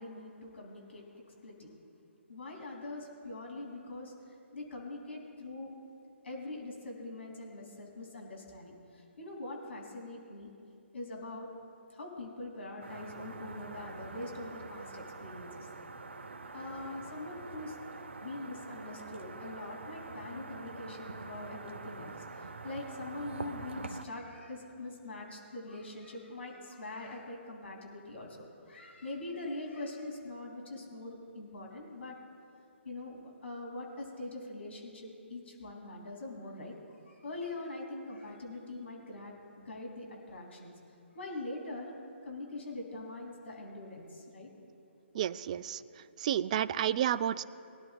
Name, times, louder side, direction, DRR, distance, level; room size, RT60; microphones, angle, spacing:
voice 1, 0.0-1.7 2.3-4.1 4.5-5.7 6.2-10.5 10.9-11.5 11.9-15.5 16.5-17.8 18.2-32.2 32.8-39.3 39.6-40.7 41.1-41.9 42.2-44.5, left 2 dB, 65° left, 0 dB, 2.8 m, -43 dB
sound 1, 12.8-24.1, right 3 dB, 70° right, 0.9 m, -45 dB
voice 2, 45.1-45.8 46.2-47.4, right 10 dB, 35° right, 16 dB, 0.4 m, -30 dB
22.0 x 11.0 x 2.4 m, 2.6 s
figure-of-eight pair, 140°, 7 cm